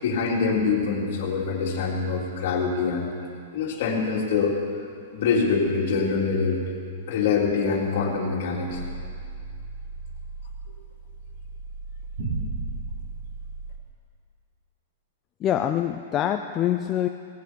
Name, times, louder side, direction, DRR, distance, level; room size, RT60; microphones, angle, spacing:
voice 1, 0.0-3.1 3.5-4.6 5.1-6.6 7.1-8.8, left 5 dB, 50° left, -3 dB, 3.7 m, -24 dB
sound 1, 8.7-13.8, right 3 dB, 70° right, 3.8 m, -35 dB
voice 2, 15.4-17.1, left 11 dB, 20° left, 6 dB, 0.4 m, -25 dB
18.5 x 15.5 x 4.7 m, 2.3 s
supercardioid pair, 165°, 0 cm